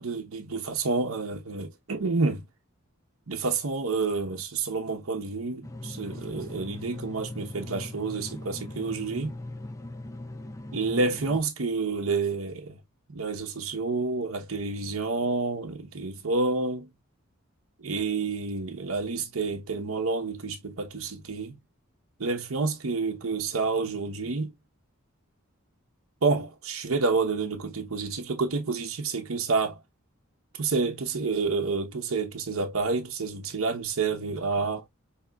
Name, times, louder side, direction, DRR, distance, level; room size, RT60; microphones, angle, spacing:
voice 1, 0.0-2.4 3.3-9.3 10.7-12.8 13.1-16.9 17.8-21.6 22.2-24.5 26.2-29.8 30.6-34.8, right 4 dB, 70° right, 0.8 m, -29 dB
sound 1, 5.6-11.4, left 1 dB, 15° left, 0.4 m, -40 dB
5.7 x 2.9 x 2.3 m
head